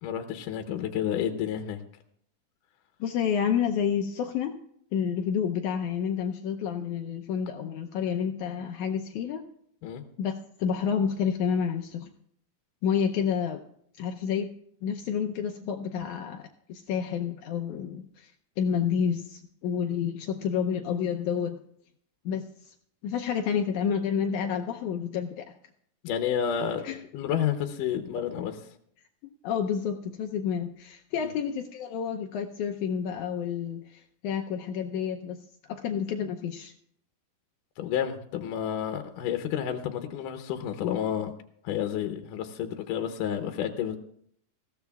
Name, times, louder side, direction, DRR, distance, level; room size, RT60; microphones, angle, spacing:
voice 1, 0.0-1.8 9.8-10.0 26.0-28.6 31.2-31.3 37.8-41.3 41.6-44.0, left 9 dB, 75° left, 6 dB, 2.2 m, -30 dB
voice 2, 3.0-4.6 4.9-9.4 10.2-10.3 10.6-12.1 12.8-13.6 14.0-14.5 14.8-18.3 18.6-21.6 22.2-22.7 23.0-25.5 26.8-27.0 29.2-35.4 35.7-36.7, left 7 dB, 90° left, 4 dB, 1.7 m, -29 dB
20.5 x 15.5 x 2.3 m, 0.67 s
omnidirectional pair, 4.3 m